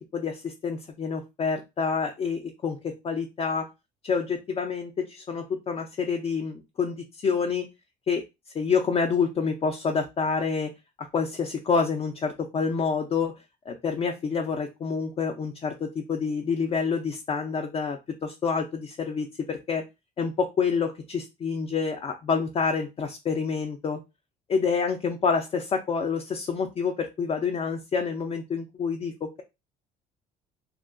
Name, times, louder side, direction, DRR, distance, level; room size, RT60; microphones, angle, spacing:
voice 1, 0.1-3.7 4.0-7.7 8.1-8.2 8.5-10.7 11.0-13.4 13.7-19.8 20.2-24.0 24.5-29.4, left 5 dB, 35° left, 3 dB, 0.4 m, -28 dB
2.7 x 2.2 x 2.4 m, 0.24 s
cardioid pair, 110°, 17 cm